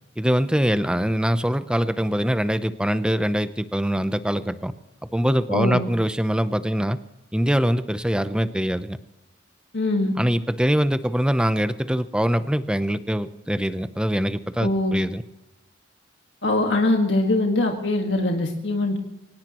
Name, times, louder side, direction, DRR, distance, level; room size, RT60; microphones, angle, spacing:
voice 1, 0.2-4.7 5.1-7.0 7.3-9.0 10.2-15.2, equal, 5° right, 12 dB, 0.7 m, -23 dB
voice 2, 5.5-5.8 9.7-10.1 14.6-14.9 16.4-19.0, left 2 dB, 80° left, 2 dB, 1.7 m, -22 dB
23.5 x 18.5 x 3.0 m, 0.96 s
head